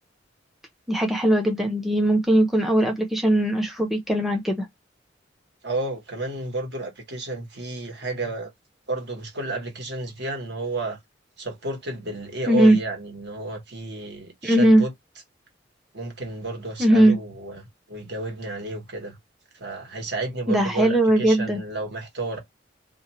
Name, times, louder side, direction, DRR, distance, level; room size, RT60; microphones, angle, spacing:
voice 1, 0.9-4.7 12.5-12.8 14.4-14.8 16.8-17.2 20.5-21.6, right 1 dB, ahead, 0.6 m, -19 dB
voice 2, 5.6-8.5 8.9-11.0 11.4-14.9 15.9-19.2 19.5-22.4, right 2 dB, 65° right, 1.3 m, -31 dB
2.6 x 2.4 x 4.1 m
head